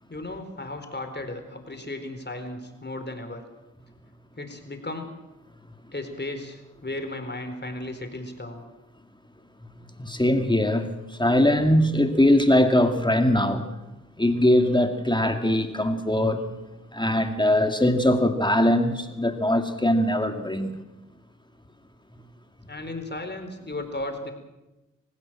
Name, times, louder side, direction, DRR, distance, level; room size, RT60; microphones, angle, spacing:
voice 1, 0.1-3.4 4.4-5.1 5.9-8.6 22.7-24.3, left 2 dB, 35° left, 6 dB, 4.2 m, -35 dB
voice 2, 9.8-13.6 14.2-16.6 16.9-20.7, left 1 dB, 15° left, 6 dB, 2.2 m, -21 dB
24.5 x 16.0 x 7.6 m, 1.0 s
cardioid pair, 40°, 32 cm